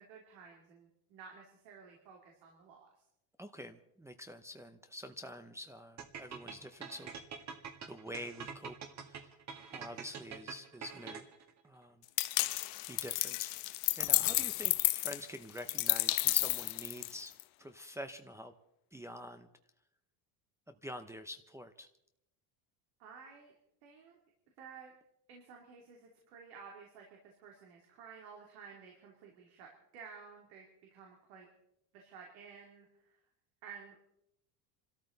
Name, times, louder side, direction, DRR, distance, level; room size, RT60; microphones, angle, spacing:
voice 1, 0.0-2.9 9.8-9.9 23.0-23.5 23.8-24.2 24.6-24.9 25.3-30.6 30.9-31.5 31.9-33.1 33.6-34.0, right 6 dB, 85° right, 0 dB, 3.2 m, -53 dB
voice 2, 3.4-7.1 7.9-9.3 9.7-11.2 11.6-12.0 12.9-17.3 17.6-18.5 18.9-19.5 20.7-21.9, equal, 5° right, 5 dB, 0.7 m, -47 dB
sound 1, 6.0-11.5, right 6 dB, 35° right, 1.9 m, -45 dB
sound 2, 12.2-17.4, left 20 dB, 75° left, 0.9 m, -31 dB
27.0 x 13.0 x 4.0 m, 0.82 s
cardioid pair, 135°, 46 cm